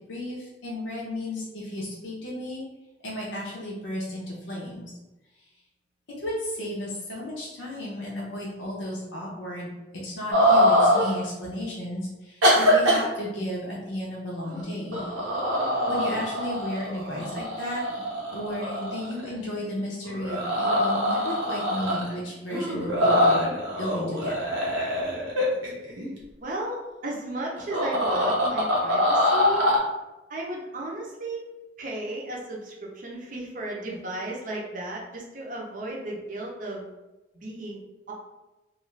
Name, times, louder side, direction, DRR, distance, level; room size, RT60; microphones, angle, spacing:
voice 1, 0.1-2.6 3.0-4.9 5.4-5.5 6.2-9.7 10.0-15.0 15.9-18.0 18.3-23.5 23.8-24.4, left 1 dB, 80° left, -5 dB, 0.6 m, -34 dB
sound 1, 10.3-11.1 12.4-13.0 14.4-14.6 14.9-19.5 20.0-22.2 22.5-26.1 27.6-29.8, equal, 90° right, 0.8 m, -23 dB
voice 2, 26.4-29.7 30.3-31.4 31.8-36.8 37.4-37.8 38.1-38.2, right 1 dB, 45° right, -2 dB, 0.6 m, -34 dB
2.5 x 2.3 x 3.1 m, 1.0 s
head